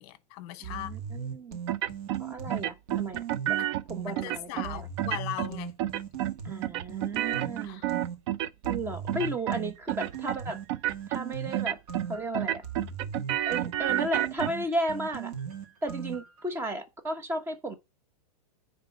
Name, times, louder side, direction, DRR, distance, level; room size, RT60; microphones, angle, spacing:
voice 1, 0.0-0.9 3.6-3.7 4.1-5.7 7.6-7.9, left 13 dB, 40° left, 1.2 m, -39 dB
voice 2, 0.6-1.6 2.2-3.6 3.9-4.9 6.4-7.8 8.6-10.6 11.1-11.8 12.1-12.6 13.5-15.3 15.8-17.8, right 1 dB, 10° right, 1.1 m, -34 dB
sound 1, 0.6-4.2 4.6-8.2 8.6-16.4, right 7 dB, 65° right, 2.1 m, -38 dB
sound 2, 1.7-2.2 2.5-3.8 4.2-4.7 5.0-5.5 5.8-6.3 6.6-8.8 9.1-9.6 9.9-10.4 10.7-11.2 11.5-12.1 12.3-14.5, right 13 dB, 45° right, 0.5 m, -30 dB
9.5 x 3.8 x 5.8 m
supercardioid pair, 150°, 21 cm